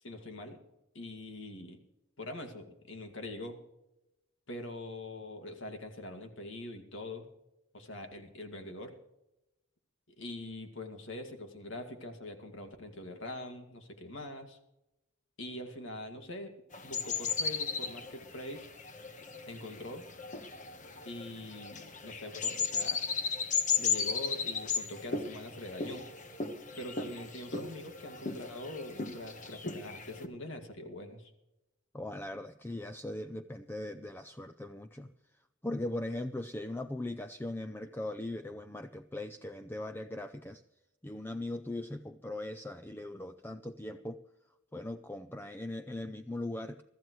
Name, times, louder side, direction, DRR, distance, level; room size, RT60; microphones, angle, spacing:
voice 1, 0.0-0.6 0.9-1.8 2.2-3.6 4.5-7.3 7.7-9.0 10.2-14.6 15.4-16.5 16.8-18.7 19.5-20.1 21.0-23.1 23.8-26.1 26.8-31.3, left 1 dB, 80° left, 5 dB, 2.1 m, -43 dB
sound 1, 16.7-30.3, left 5 dB, 40° left, 1.3 m, -36 dB
voice 2, 31.9-35.1 35.6-40.6 41.0-44.2 44.7-46.8, left 1 dB, 10° left, 9 dB, 0.5 m, -39 dB
23.5 x 14.0 x 3.1 m, 0.90 s
head